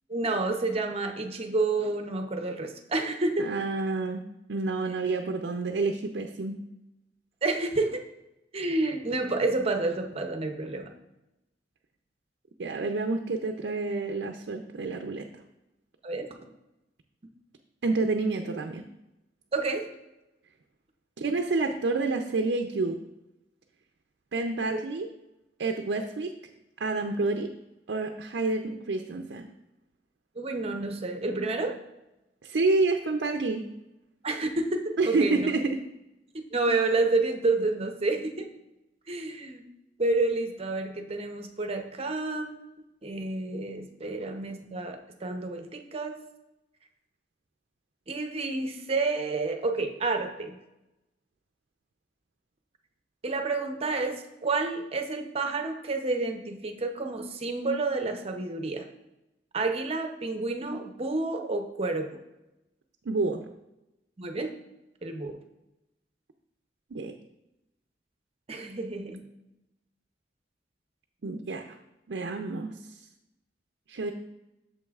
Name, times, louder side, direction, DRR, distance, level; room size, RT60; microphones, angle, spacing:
voice 1, 0.1-3.5 7.4-8.0 8.5-10.9 16.0-16.3 19.5-19.9 24.7-24.8 30.4-31.8 34.2-35.5 36.5-38.5 39.1-39.6 40.0-42.6 43.0-46.1 48.1-50.6 53.2-58.9 59.5-62.2 64.2-64.5 65.0-65.4 68.5-69.2, right 3 dB, 35° right, 5 dB, 0.7 m, -29 dB
voice 2, 3.4-4.2 4.5-6.6 12.6-15.2 17.8-18.8 21.2-23.0 24.3-25.1 25.6-26.3 26.8-27.5 27.9-29.5 32.4-33.6 35.0-35.8 63.1-63.4 66.9-67.1 71.2-71.8 72.1-72.7 73.9-74.1, right 3 dB, 75° right, 4 dB, 0.5 m, -28 dB
8.4 x 6.9 x 2.4 m, 0.93 s
head